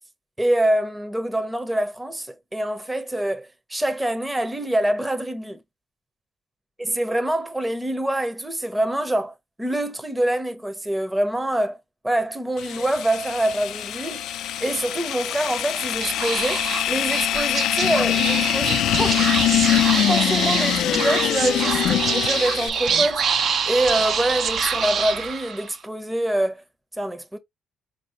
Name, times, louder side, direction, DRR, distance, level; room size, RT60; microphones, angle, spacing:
voice 1, 0.4-5.6 6.9-11.8 12.0-14.3 14.6-19.2 20.1-23.2 23.7-26.6 27.0-27.4, right 1 dB, 10° right, 0.7 m, -25 dB
sound 1, 12.6-22.7, left 12 dB, 80° left, 0.3 m, -23 dB
Speech / Whispering, 15.9-25.8, right 6 dB, 60° right, 0.6 m, -25 dB
4.3 x 2.7 x 2.9 m
cardioid pair, 90°, 0 cm